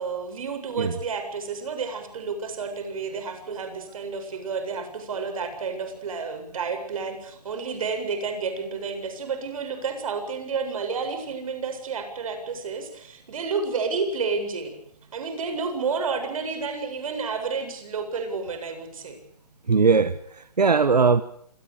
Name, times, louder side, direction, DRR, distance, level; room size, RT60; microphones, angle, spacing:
voice 1, 0.0-14.8 15.1-19.2, right 5 dB, 60° right, 7 dB, 7.9 m, -30 dB
voice 2, 19.7-21.2, right 5 dB, 90° right, 13 dB, 1.4 m, -20 dB
27.0 x 23.5 x 5.1 m, 0.67 s
hypercardioid pair, 140°, 20 cm